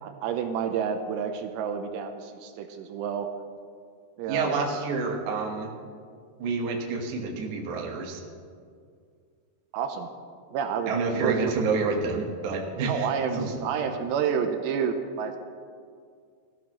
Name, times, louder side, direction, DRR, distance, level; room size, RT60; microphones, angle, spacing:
voice 1, 0.0-3.3 4.2-4.5 9.7-10.1 10.5-11.6 12.9-15.4, right 7 dB, 85° right, 6 dB, 2.9 m, -29 dB
voice 2, 4.3-5.7 6.4-8.2 10.9-13.1 13.3-13.5, right 4 dB, 60° right, 1 dB, 2.3 m, -28 dB
18.5 x 13.0 x 3.1 m, 2.1 s
omnidirectional pair, 5.0 m